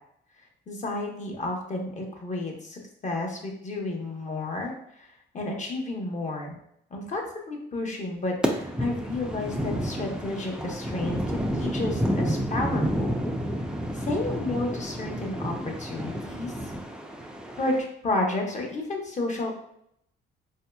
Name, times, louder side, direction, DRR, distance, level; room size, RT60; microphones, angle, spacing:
voice 1, 0.7-5.1 5.3-6.6 6.9-13.1 13.9-16.5 17.6-19.5, left 2 dB, 35° left, 0 dB, 0.9 m, -31 dB
sound 1, 8.4-17.8, equal, 5° right, 0.4 m, -30 dB
4.0 x 2.7 x 2.2 m, 0.73 s
cardioid pair, 90°, 20 cm